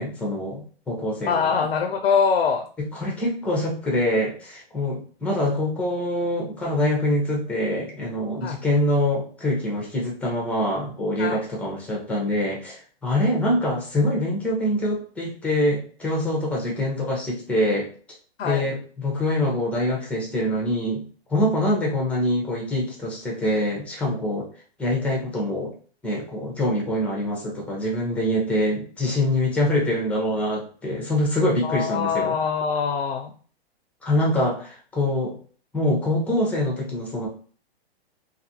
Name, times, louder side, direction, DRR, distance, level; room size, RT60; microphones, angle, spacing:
voice 1, 0.0-1.5 2.8-17.9 18.4-21.0 21.3-24.5 24.8-25.7 26.0-32.4 34.0-35.3 35.7-37.3, left 1 dB, 5° left, -2 dB, 0.6 m, -24 dB
voice 2, 1.3-2.7 8.4-8.6 11.2-11.4 18.4-18.7 31.6-33.3, left 6 dB, 75° left, 4 dB, 0.5 m, -23 dB
2.6 x 2.5 x 2.7 m, 0.44 s
hypercardioid pair, 140°, 31 cm